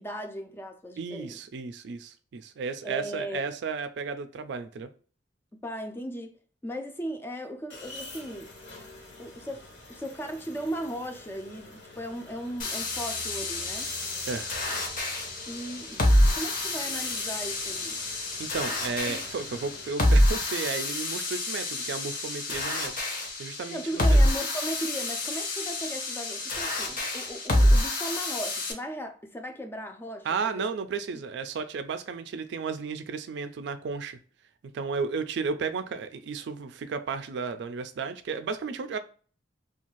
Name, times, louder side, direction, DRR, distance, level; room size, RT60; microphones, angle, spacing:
voice 1, 0.0-1.4 2.8-3.5 5.6-6.3 6.6-8.5 9.2-13.9 15.5-16.0 16.3-18.1 19.1-19.2 23.7-30.3 30.5-30.7, right 1 dB, 15° left, 0.4 m, -37 dB
voice 2, 1.0-4.9 14.3-14.5 18.4-23.8 24.1-24.2 30.2-34.2 34.7-39.0, right 5 dB, 65° right, 0.3 m, -33 dB
sound 1, 7.7-19.9, left 2 dB, 75° left, 1.3 m, -46 dB
sound 2, 12.6-28.7, left 1 dB, 50° left, 0.7 m, -27 dB
2.5 x 2.3 x 3.0 m
head